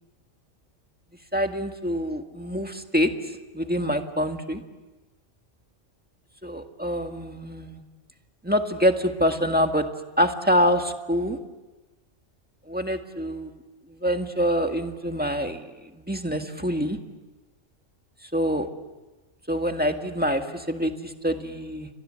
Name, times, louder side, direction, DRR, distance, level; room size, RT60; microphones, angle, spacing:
voice 1, 1.3-3.1 3.5-4.6 6.4-7.8 8.4-9.9 10.2-11.4 12.7-13.6 14.0-15.6 16.0-17.0 18.3-18.7 19.5-21.9, equal, 5° right, 5 dB, 1.6 m, -25 dB
30.0 x 24.5 x 7.6 m, 1.2 s
omnidirectional pair, 1.3 m